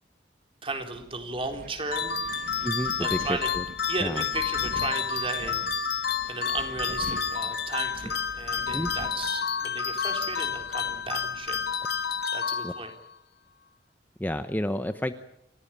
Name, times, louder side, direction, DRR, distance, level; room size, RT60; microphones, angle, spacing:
voice 1, 0.6-2.2 3.0-3.5 3.9-11.6 11.9-12.9, right 3 dB, 30° right, 5 dB, 3.9 m, -35 dB
Wind, 0.7-12.2, right 2 dB, 45° right, 1.1 m, -45 dB
sound 1, 1.9-13.1, left 6 dB, 60° left, 1.6 m, -30 dB
voice 2, 2.6-3.6 4.0-4.2 8.7-8.9 12.6-12.7 14.2-15.1, left 1 dB, 10° left, 9 dB, 0.8 m, -30 dB
29.0 x 15.5 x 8.9 m, 0.78 s
head